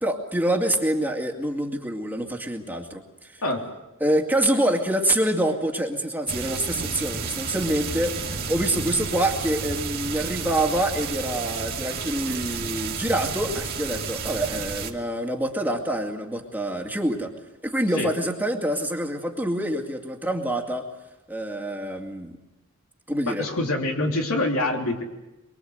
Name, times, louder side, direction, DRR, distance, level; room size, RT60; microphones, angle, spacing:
voice 1, 0.0-3.4 4.0-17.3 17.6-20.9 21.3-22.4 23.1-23.5, right 1 dB, 10° right, 2 dB, 2.3 m, -26 dB
sound 1, 6.3-14.9, right 5 dB, 50° right, 2.6 m, -31 dB
voice 2, 23.2-25.0, left 2 dB, 80° left, 2 dB, 3.4 m, -25 dB
24.0 x 23.5 x 8.0 m, 1.0 s
head